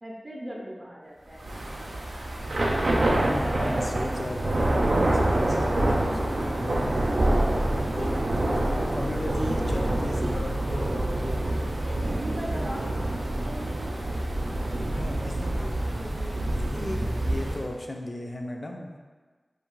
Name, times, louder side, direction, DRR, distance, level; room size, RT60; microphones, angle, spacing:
voice 1, 0.0-2.2 3.3-3.5 10.0-10.4 11.8-17.1, equal, 30° right, -3 dB, 0.5 m, -42 dB
Thunder / Rain, 1.4-17.7, right 1 dB, 90° right, 0.3 m, -26 dB
voice 2, 2.8-8.2 8.9-11.6 14.9-15.8 16.5-18.9, left 1 dB, 50° left, 2 dB, 0.3 m, -36 dB
2.5 x 2.4 x 3.0 m, 1.4 s
wide cardioid pair, 50°, 0 cm